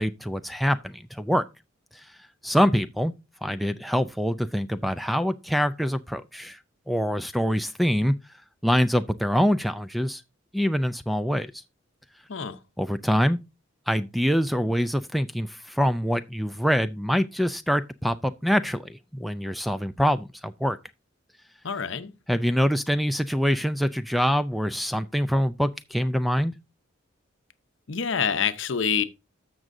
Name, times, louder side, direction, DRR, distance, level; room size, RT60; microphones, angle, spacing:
voice 1, 0.0-1.4 2.4-3.1 3.4-6.6 6.9-8.1 8.6-10.2 10.5-11.5 12.8-13.4 13.9-20.8 22.3-26.5, equal, ahead, 0.3 m, -25 dB
voice 2, 21.6-22.1 27.9-29.0, left 6 dB, 65° left, 0.7 m, -26 dB
14.0 x 6.1 x 2.6 m
head